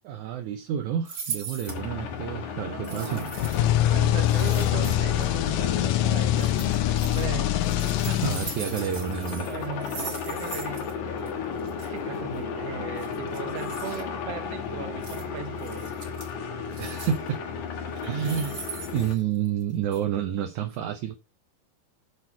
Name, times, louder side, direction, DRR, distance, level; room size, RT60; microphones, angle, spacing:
voice 1, 0.0-3.3 8.1-9.5 13.9-14.0 16.8-17.4 18.0-18.6 18.9-21.2, right 9 dB, 70° right, 2.1 m, -29 dB
sound 1, 1.0-1.8 2.8-3.7 4.3-5.2 6.4-7.2 7.6-10.9 11.2-11.3 11.6-11.9 13.0-14.0 15.0-15.2 15.6-16.3 16.7-17.3 18.0-19.6 19.9-20.0, right 5 dB, 35° right, 2.3 m, -40 dB
sound 2, 1.7-19.2, left 6 dB, 65° left, 2.8 m, -34 dB
voice 2, 2.7-3.4 3.9-7.6 9.5-10.9 11.8-16.0, right 6 dB, 55° right, 2.3 m, -37 dB
sound 3, 3.4-8.9, left 13 dB, 80° left, 2.4 m, -24 dB
8.3 x 6.7 x 4.5 m
omnidirectional pair, 3.8 m